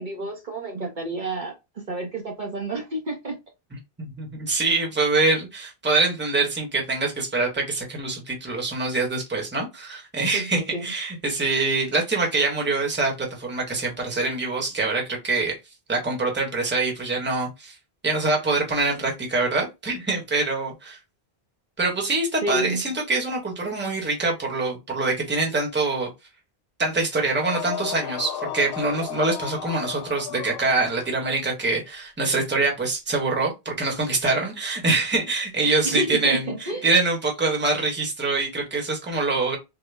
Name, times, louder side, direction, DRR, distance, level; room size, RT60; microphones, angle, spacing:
voice 1, 0.0-1.5 1.9-3.3 10.3-10.8 22.4-22.8 35.8-36.9, right 2 dB, 50° right, 1.0 m, -29 dB
voice 2, 4.0-15.6 15.9-17.8 18.0-21.0 21.8-26.1 26.8-39.6, right 3 dB, 10° right, 0.9 m, -24 dB
sound 1, 27.2-31.2, left 10 dB, 75° left, 0.8 m, -34 dB
3.8 x 2.0 x 3.2 m
omnidirectional pair, 1.0 m